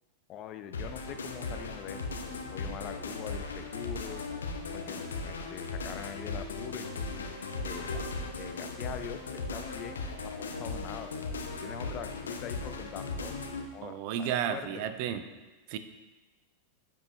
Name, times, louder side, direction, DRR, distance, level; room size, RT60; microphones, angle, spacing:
voice 1, 0.3-2.0 2.5-4.2 4.7-7.1 7.6-8.0 8.4-11.1 11.6-13.4 13.7-14.9, left 9 dB, 35° left, 9 dB, 0.5 m, -43 dB
sound 1, 0.7-13.7, left 3 dB, 70° left, 0.8 m, -37 dB
voice 2, 13.8-15.2 15.7-15.8, right 9 dB, 45° right, 10 dB, 0.5 m, -32 dB
10.5 x 8.6 x 2.2 m, 1.2 s
figure-of-eight pair, 90°, 0 cm